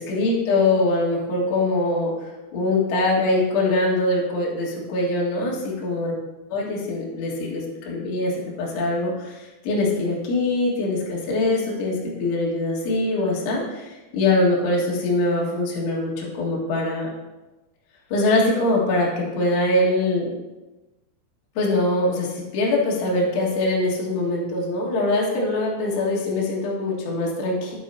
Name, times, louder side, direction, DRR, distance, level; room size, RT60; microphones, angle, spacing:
voice 1, 0.0-6.1 6.5-17.1 18.1-20.3 21.6-27.7, left 2 dB, 70° left, -4 dB, 4.0 m, -23 dB
10.0 x 8.9 x 2.7 m, 1.1 s
omnidirectional pair, 5.8 m